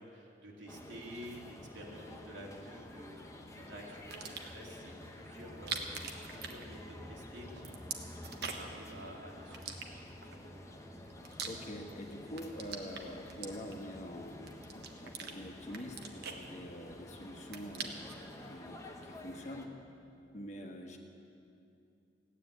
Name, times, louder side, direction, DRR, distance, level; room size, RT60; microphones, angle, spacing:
voice 1, 0.0-3.2 3.6-5.8 6.3-10.7 20.5-20.6, equal, 85° right, -2 dB, 2.7 m, -50 dB
sound 1, 0.7-19.7, left 1 dB, 15° left, 1.1 m, -50 dB
sound 2, 4.0-4.6 5.5-7.2 7.4-8.8 9.5-10.3 10.9-12.0 12.3-14.0 14.5-15.3 15.7-17.0 17.3-18.2, right 6 dB, 60° right, 1.3 m, -43 dB
voice 2, 11.4-18.1 18.5-19.7 20.3-21.0, equal, 40° left, 2 dB, 1.5 m, -45 dB
16.5 x 10.0 x 8.3 m, 2.6 s
head